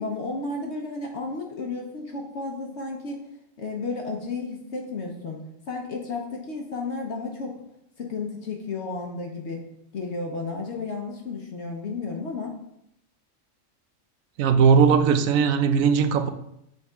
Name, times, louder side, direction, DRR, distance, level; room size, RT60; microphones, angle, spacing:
voice 1, 0.0-3.2 3.6-5.4 5.7-7.6 8.0-9.6 9.9-12.6, left 3 dB, 60° left, 0 dB, 1.0 m, -32 dB
voice 2, 14.4-16.3, right 6 dB, 80° right, 9 dB, 1.0 m, -19 dB
6.4 x 4.5 x 3.5 m, 0.78 s
omnidirectional pair, 1.4 m